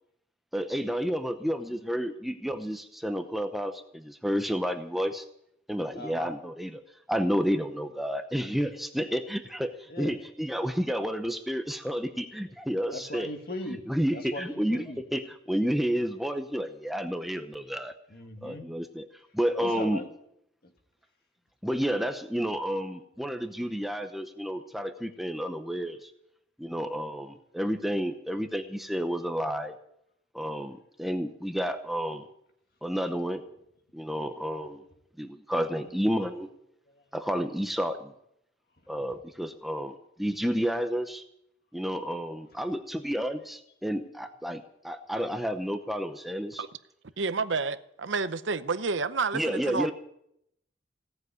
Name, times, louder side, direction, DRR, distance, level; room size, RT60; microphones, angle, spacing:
voice 1, 0.5-5.2 5.7-6.8 7.1-13.3 13.9-14.8 15.1-17.9 18.4-19.1 19.3-20.0 21.6-26.1 26.6-29.7 30.3-32.3 32.8-33.4 33.9-34.8 35.2-36.5 37.1-38.1 38.9-41.2 41.7-46.6 49.3-49.9, equal, ahead, 0.7 m, -30 dB
voice 2, 5.9-6.3 9.9-10.2 12.9-15.0 18.1-18.7 19.6-20.1 20.6-20.7 35.7-35.9 36.9-37.0, left 1 dB, 50° left, 1.9 m, -39 dB
voice 3, 47.2-49.9, right 4 dB, 75° right, 0.7 m, -29 dB
17.0 x 7.9 x 9.5 m
head